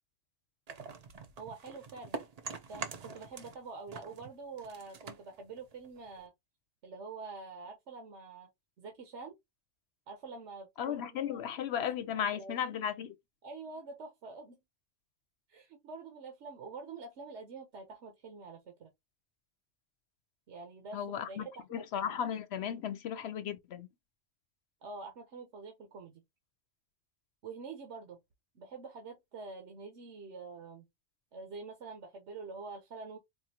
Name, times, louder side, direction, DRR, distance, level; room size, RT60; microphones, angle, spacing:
sound 1, 0.7-3.6 3.9-6.3, right 4 dB, 45° right, 0.6 m, -45 dB
voice 1, 1.4-2.2 2.7-6.3 6.8-8.5 8.8-9.4 10.1-11.8 12.1-12.8 13.4-14.6 15.5-18.9 20.5-21.4 21.7-22.2 24.8-26.2 27.4-28.2 28.5-30.9 31.3-33.2, right 4 dB, 80° right, 1.2 m, -46 dB
voice 2, 10.8-13.1 20.9-23.9, left 8 dB, 70° left, 0.8 m, -35 dB
4.3 x 2.5 x 2.8 m
omnidirectional pair, 1.2 m